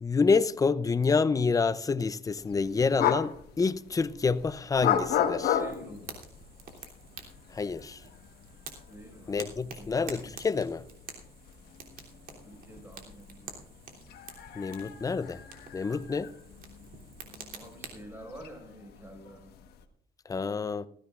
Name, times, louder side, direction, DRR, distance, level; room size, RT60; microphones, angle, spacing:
voice 1, 0.0-5.6 7.5-8.0 9.3-10.8 14.6-15.4 15.7-16.3 20.3-20.9, left 4 dB, 20° left, 0.6 m, -28 dB
sound 1, 2.4-19.9, left 9 dB, 70° left, 1.4 m, -36 dB
voice 2, 5.5-6.2 8.9-9.5 9.8-9.9 12.4-13.5 17.5-19.5, equal, 15° right, 5.3 m, -47 dB
Fire, 5.6-18.0, right 5 dB, 60° right, 3.1 m, -48 dB
19.5 x 15.0 x 2.5 m
cardioid pair, 110°, 17 cm